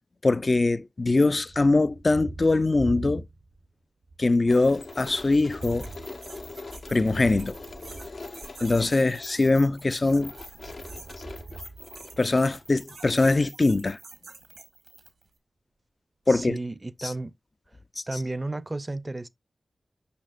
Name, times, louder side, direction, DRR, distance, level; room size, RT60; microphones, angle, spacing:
voice 1, 0.2-3.2 4.2-5.9 6.9-7.5 8.6-10.3 12.2-14.0 16.3-16.6 18.0-18.2, left 2 dB, 45° left, 0.4 m, -22 dB
Thunder, 1.3-3.7 4.0-8.9 9.9-12.6, right 2 dB, 70° right, 0.8 m, -43 dB
sound 1, 4.3-15.3, right 4 dB, 90° right, 1.8 m, -49 dB
sound 2, 4.5-13.0, left 3 dB, 70° left, 0.8 m, -43 dB
voice 2, 16.3-17.3 18.1-19.3, right 2 dB, 30° right, 0.5 m, -33 dB
6.8 x 5.6 x 2.5 m
cardioid pair, 50°, 0 cm